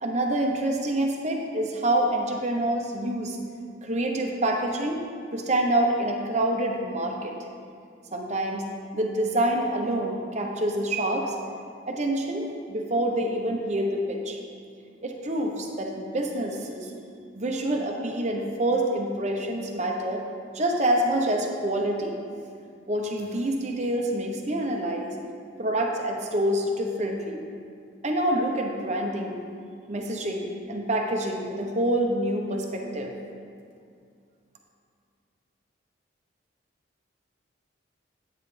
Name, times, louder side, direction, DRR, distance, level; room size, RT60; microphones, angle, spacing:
voice 1, 0.0-3.4 3.8-5.0 5.3-7.3 8.1-8.7 8.9-11.3 11.9-14.4 15.0-16.9 17.3-20.2 20.5-22.2 22.9-25.1 25.6-27.4 28.0-29.4 29.9-33.1, right 1 dB, 35° right, 1 dB, 0.9 m, -27 dB
9.4 x 9.1 x 3.3 m, 2.3 s
head